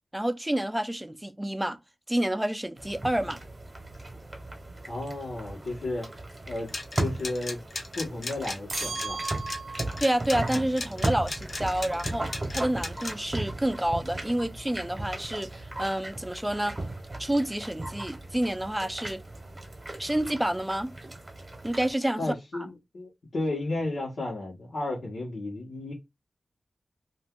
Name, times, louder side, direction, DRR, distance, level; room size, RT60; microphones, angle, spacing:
voice 1, 0.1-1.8 2.1-3.4 10.0-12.2 12.5-16.7 17.2-19.2 20.0-20.9 21.6-22.7, right 1 dB, 10° right, 0.4 m, -29 dB
sound 1, 2.8-21.9, right 2 dB, 35° right, 0.9 m, -37 dB
voice 2, 4.8-6.1 6.5-6.7 7.0-7.6 8.0-9.2 22.2-25.9, left 2 dB, 80° left, 1.1 m, -33 dB
sound 2, 6.7-13.1, left 3 dB, 65° left, 0.7 m, -35 dB
sound 3, 8.7-10.1, right 4 dB, 55° right, 0.6 m, -35 dB
2.5 x 2.3 x 3.5 m
wide cardioid pair, 100°, 0 cm